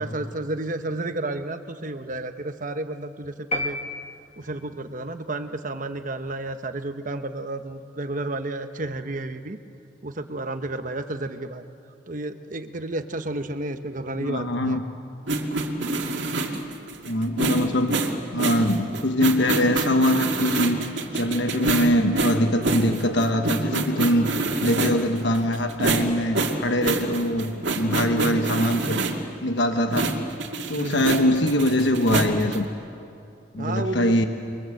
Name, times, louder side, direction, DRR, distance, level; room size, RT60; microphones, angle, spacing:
voice 1, 0.0-3.8 4.4-9.6 10.0-11.6 12.1-14.8 30.8-31.2 33.5-34.3, right 2 dB, 45° right, 8 dB, 1.1 m, -31 dB
sound 1, 3.5-4.8, left 1 dB, 35° left, 1.5 m, -31 dB
voice 2, 14.1-14.8 17.1-18.0 18.3-20.8 21.1-24.3 24.6-29.0 29.4-30.2 30.7-32.6 33.5-34.3, left 1 dB, 70° left, 6 dB, 1.2 m, -23 dB
sound 2, 15.3-29.3 29.9-32.6, right 3 dB, 75° right, 2.4 m, -26 dB
28.5 x 23.0 x 7.9 m, 2.6 s
head